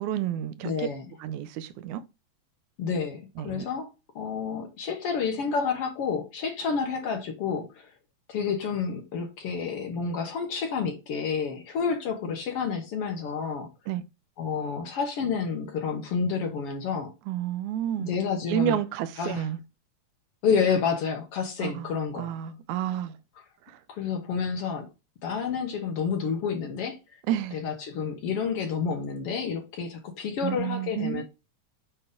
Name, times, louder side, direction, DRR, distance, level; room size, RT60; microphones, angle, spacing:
voice 1, 0.0-0.9 1.2-2.0 3.4-3.7 13.9-14.0 17.3-18.2 18.5-19.6 21.6-23.2 23.7-23.8 27.3-27.6 30.4-31.2, right 11 dB, 85° right, 2.0 m, -30 dB
voice 2, 0.6-1.0 2.8-3.9 4.1-7.9 8.3-13.7 14.4-17.1 18.0-18.8 19.2-19.5 20.4-22.3 23.9-24.9 25.2-27.0 27.5-31.2, left 6 dB, 65° left, 1.7 m, -29 dB
7.8 x 3.9 x 3.7 m
omnidirectional pair, 3.4 m